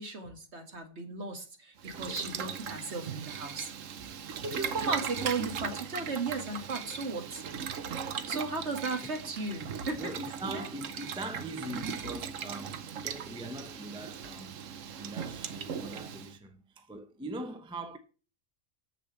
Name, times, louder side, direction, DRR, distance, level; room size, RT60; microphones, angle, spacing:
voice 1, 0.0-3.7 4.4-7.4 8.3-10.0 10.5-10.7, right 3 dB, 55° right, 2.0 m, -35 dB
Boiling, 1.8-16.3, right 7 dB, 70° right, 1.2 m, -39 dB
voice 2, 10.0-14.6 15.0-18.0, right 1 dB, 5° right, 0.7 m, -42 dB
7.0 x 6.8 x 7.1 m
omnidirectional pair, 1.4 m